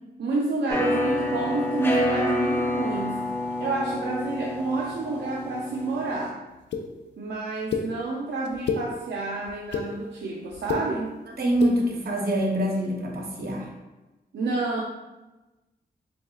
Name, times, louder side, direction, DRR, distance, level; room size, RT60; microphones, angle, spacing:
voice 1, 0.2-3.3 3.6-6.4 7.2-11.1 14.3-14.8, right 3 dB, 75° right, -2 dB, 0.5 m, -29 dB
sound 1, 0.7-6.3, left 1 dB, 10° left, 0.7 m, -28 dB
sound 2, 6.7-6.8 7.7-7.8 8.5-8.8 9.5-9.9 10.5-10.8 11.5-11.7, left 6 dB, 80° left, 0.4 m, -27 dB
voice 2, 11.3-13.7, right 1 dB, 60° right, 0 dB, 0.9 m, -25 dB
4.3 x 3.1 x 2.3 m, 1.1 s
cardioid pair, 60°, 18 cm